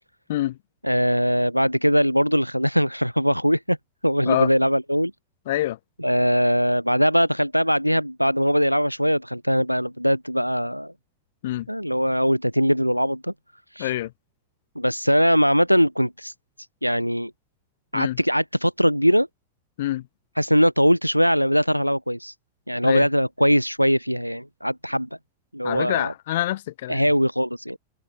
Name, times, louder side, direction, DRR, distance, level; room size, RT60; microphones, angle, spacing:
voice 1, 0.8-3.8 4.0-5.1 6.0-10.9 11.7-13.3 13.7-13.9 14.7-16.3 16.8-17.3 17.9-19.3 20.4-22.3 22.7-25.1 25.5-26.1 26.9-27.8, equal, 90° left, 1.7 m, -21 dB
voice 2, 5.5-5.8 11.4-11.7 13.8-14.1 17.9-18.2 19.8-20.1 22.8-23.1 25.6-27.1, left 15 dB, 55° left, 5.7 m, -26 dB
figure-of-eight pair, 90°, 0 cm